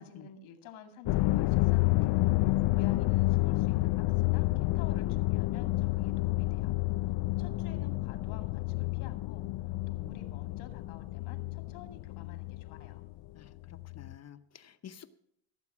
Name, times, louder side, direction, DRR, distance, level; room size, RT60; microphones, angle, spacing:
voice 1, 0.0-6.7 7.4-9.5 9.9-13.1, left 7 dB, 90° left, 8 dB, 2.4 m, -52 dB
sound 1, 1.1-13.2 13.6-14.1, left 19 dB, 60° left, 0.6 m, -29 dB
voice 2, 13.3-15.1, left 9 dB, 35° left, 11 dB, 0.8 m, -51 dB
16.0 x 8.2 x 6.1 m, 0.68 s
cardioid pair, 130°, 48 cm